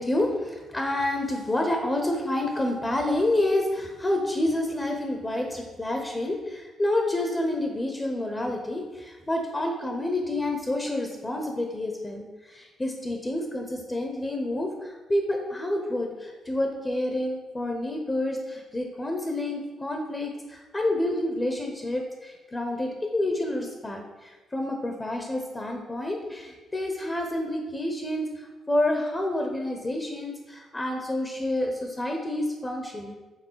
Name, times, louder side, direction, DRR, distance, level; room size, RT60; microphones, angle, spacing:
voice 1, 0.0-33.1, left 1 dB, 20° left, 3 dB, 0.9 m, -28 dB
6.6 x 3.8 x 5.6 m, 1.2 s
cardioid pair, 90°, 0 cm